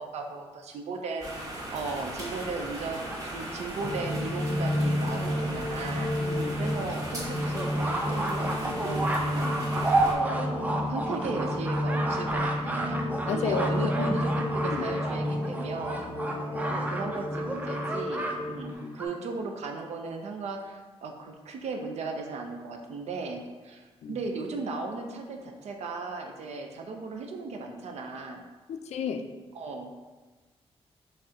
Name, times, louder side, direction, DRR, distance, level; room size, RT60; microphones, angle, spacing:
voice 1, 0.0-6.1 6.5-9.6 10.1-16.0 16.6-28.4 29.5-29.9, right 3 dB, 85° right, 3 dB, 0.6 m, -36 dB
sound 1, 1.2-10.1, right 1 dB, 30° right, 1.0 m, -38 dB
sound 2, 2.3-3.9 4.7-4.8 5.0-5.1 5.5-5.6 5.9-6.0 6.5-18.3 18.6-19.1, right 2 dB, 15° right, 0.4 m, -32 dB
sound 3, 3.8-18.7, left 1 dB, 40° left, 0.6 m, -31 dB
voice 2, 6.2-6.6 13.3-13.7 14.6-14.8 18.8-19.0 24.0-24.2 28.7-29.2, left 7 dB, 85° left, 7 dB, 0.4 m, -32 dB
4.2 x 3.3 x 3.7 m, 1.3 s
wide cardioid pair, 160°, 11 cm